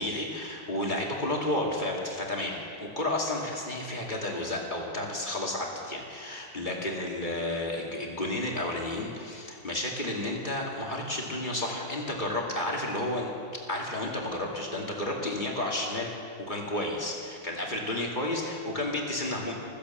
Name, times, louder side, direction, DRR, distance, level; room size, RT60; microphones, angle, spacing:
voice 1, 0.0-13.3 13.7-16.1 16.5-19.5, left 1 dB, 20° left, -2 dB, 2.3 m, -32 dB
15.0 x 13.0 x 7.3 m, 2.3 s
omnidirectional pair, 2.4 m